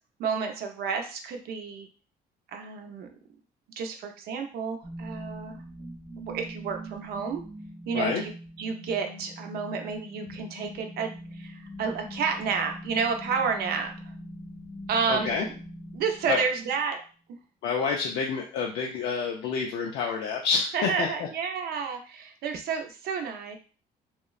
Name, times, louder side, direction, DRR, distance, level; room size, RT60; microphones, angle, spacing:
voice 1, 0.2-1.9 2.5-3.1 3.8-5.6 6.3-7.4 7.9-14.1 14.9-15.6 15.9-17.0 20.7-23.6, right 5 dB, 65° right, 4 dB, 0.5 m, -30 dB
sound 1, 4.8-16.8, equal, 5° right, 0.5 m, -42 dB
voice 2, 15.1-15.4 16.3-16.4 17.6-21.3, left 5 dB, 80° left, 0 dB, 0.4 m, -28 dB
2.9 x 2.0 x 2.3 m, 0.39 s
cardioid pair, 110°, 17 cm